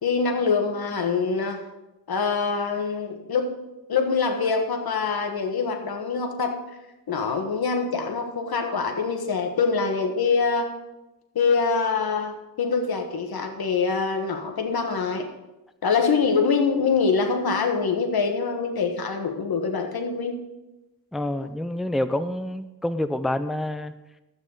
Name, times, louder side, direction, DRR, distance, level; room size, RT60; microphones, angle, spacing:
voice 1, 0.0-1.6 2.1-3.5 3.9-6.6 7.1-10.7 11.3-15.3 15.8-20.4, left 5 dB, 80° left, 5 dB, 1.4 m, -24 dB
voice 2, 21.1-23.9, left 1 dB, ahead, 11 dB, 0.5 m, -27 dB
12.0 x 8.5 x 4.0 m, 0.99 s
cardioid pair, 70°, 37 cm